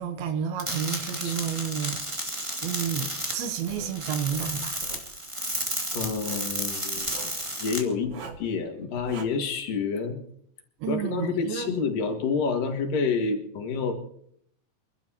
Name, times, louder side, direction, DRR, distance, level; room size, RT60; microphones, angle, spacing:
voice 1, 0.0-2.0 2.6-4.8 10.8-11.8, right 8 dB, 85° right, 2.9 m, -30 dB
sound 1, 0.6-7.8, right 1 dB, 10° right, 1.7 m, -32 dB
Writing, 3.7-3.9 4.3-5.1 6.1-6.5 7.0-7.4 8.0-8.5 9.0-9.2, right 5 dB, 55° right, 3.0 m, -42 dB
voice 2, 5.9-7.1 7.6-10.2 10.9-13.9, left 5 dB, 65° left, 3.5 m, -28 dB
29.0 x 12.5 x 3.0 m
omnidirectional pair, 4.3 m